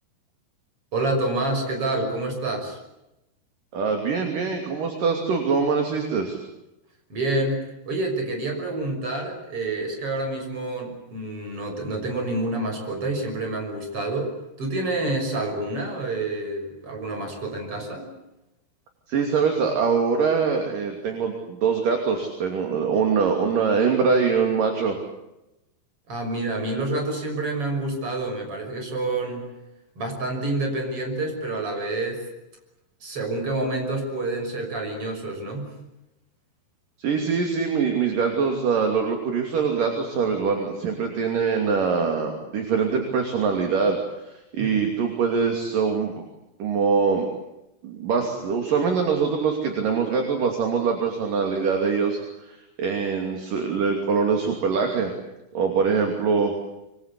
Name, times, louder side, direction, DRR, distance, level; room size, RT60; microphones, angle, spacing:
voice 1, 0.9-2.8 7.1-18.1 26.1-29.5 30.0-32.3 33.0-35.7 44.6-44.9, right 2 dB, 35° right, 4 dB, 6.9 m, -28 dB
voice 2, 3.7-6.4 19.1-25.0 37.0-44.0 44.5-46.2 46.6-47.3 47.8-52.2 52.5-55.1 55.5-56.5, right 5 dB, 55° right, 3 dB, 4.2 m, -23 dB
26.5 x 23.0 x 8.5 m, 0.93 s
omnidirectional pair, 4.7 m